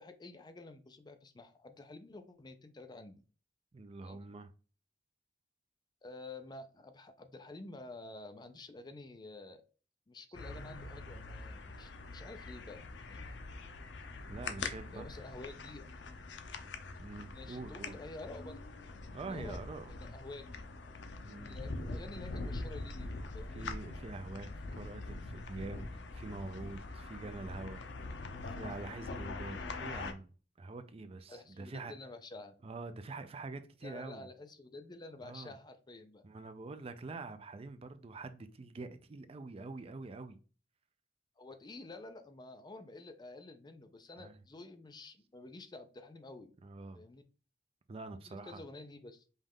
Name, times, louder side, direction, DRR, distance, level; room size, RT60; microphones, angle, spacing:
voice 1, 0.0-3.2 4.0-4.2 6.0-9.6 10.1-12.8 13.1-13.2 14.9-15.9 17.3-18.6 19.3-19.6 19.9-20.5 21.3-23.7 31.3-32.5 33.8-36.2 41.4-46.5 46.9-47.2 48.3-49.2, left 2 dB, 25° left, 0.5 m, -50 dB
voice 2, 3.7-4.5 14.3-15.2 17.0-17.9 19.1-19.9 21.2-21.6 23.5-27.8 28.5-30.3 30.6-31.9 32.6-34.3 35.2-35.6 36.2-40.4 44.2-44.4 46.6-47.0 47.9-48.6, right 3 dB, 35° right, 0.4 m, -45 dB
sound 1, 10.3-30.1, left 3 dB, 85° left, 0.6 m, -43 dB
5.3 x 2.4 x 3.5 m
head